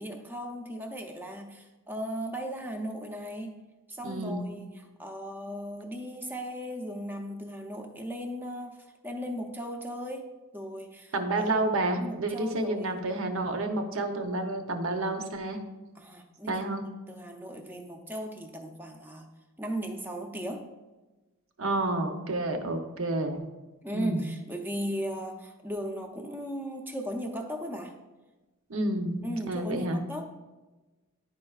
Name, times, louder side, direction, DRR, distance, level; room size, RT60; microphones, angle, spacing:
voice 1, 0.0-3.6 3.9-11.5 12.0-13.0 16.0-16.8 17.1-19.3 19.6-20.7 22.5-22.6 23.8-27.9 29.2-30.2, equal, 10° right, 4 dB, 0.5 m, -37 dB
voice 2, 4.0-4.5 11.1-15.6 16.5-16.8 21.6-23.4 23.9-24.3 28.7-29.2 29.5-30.0, right 2 dB, 65° right, 6 dB, 0.7 m, -29 dB
10.0 x 4.4 x 2.4 m, 1.2 s
head